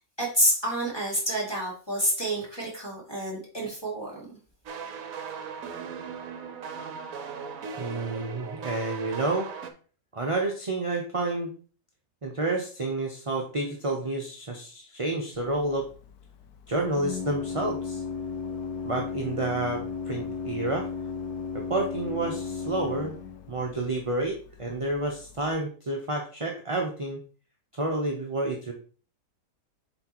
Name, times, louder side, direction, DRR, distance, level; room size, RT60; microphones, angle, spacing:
voice 1, 0.2-4.2, right 1 dB, 15° left, -4 dB, 2.4 m, -28 dB
sound 1, 4.7-9.7, right 6 dB, 60° right, 1.1 m, -38 dB
voice 2, 7.8-9.5 10.1-11.5 12.2-15.9 16.7-18.0 18.8-20.9 21.5-23.1 23.5-27.2 27.7-28.7, right 2 dB, 30° right, 0 dB, 0.6 m, -29 dB
Organ, 15.3-25.5, left 5 dB, 70° left, 1.2 m, -36 dB
7.8 x 4.4 x 3.0 m, 0.40 s
omnidirectional pair, 1.8 m